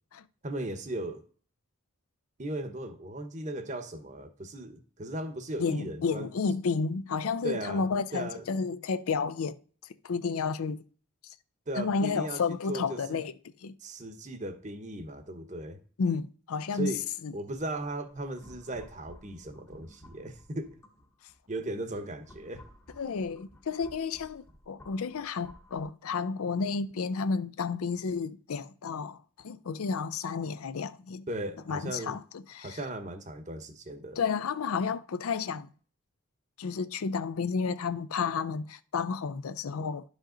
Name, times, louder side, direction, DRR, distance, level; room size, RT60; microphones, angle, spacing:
voice 1, 0.4-1.2 2.4-6.3 7.4-7.8 8.1-8.4 11.7-12.4 12.7-13.2 13.8-15.8 16.7-17.0 17.3-20.8 21.5-22.6 31.3-32.2 32.6-34.2, right 1 dB, 35° right, 0.9 m, -37 dB
voice 2, 5.6-9.6 10.0-10.8 11.2-11.3 11.7-13.3 13.6-13.8 16.0-16.9 17.2-17.3 22.9-31.3 31.7-32.8 34.2-35.7 36.6-40.0, left 5 dB, 85° left, 0.5 m, -31 dB
sound 1, 18.1-21.4 21.9-25.8, left 1 dB, 15° left, 0.8 m, -55 dB
11.0 x 5.2 x 3.8 m
head